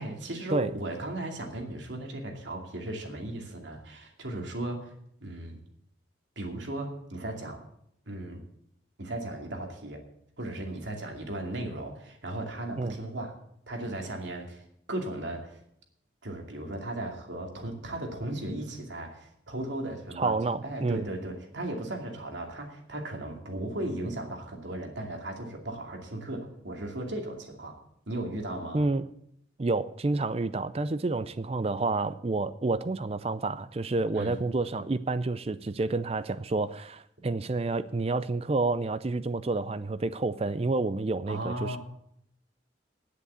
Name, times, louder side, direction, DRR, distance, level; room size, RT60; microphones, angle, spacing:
voice 1, 0.0-4.9 5.2-5.6 6.4-7.6 8.1-8.4 9.0-10.0 10.4-13.4 13.7-15.6 16.2-20.4 20.6-27.8 28.1-28.8 34.1-34.3 41.3-41.8, right 1 dB, 70° right, 2 dB, 2.5 m, -36 dB
voice 2, 20.2-21.1 28.7-29.0 29.6-41.8, right 3 dB, 30° right, 14 dB, 0.4 m, -29 dB
9.9 x 8.2 x 8.2 m, 0.74 s
head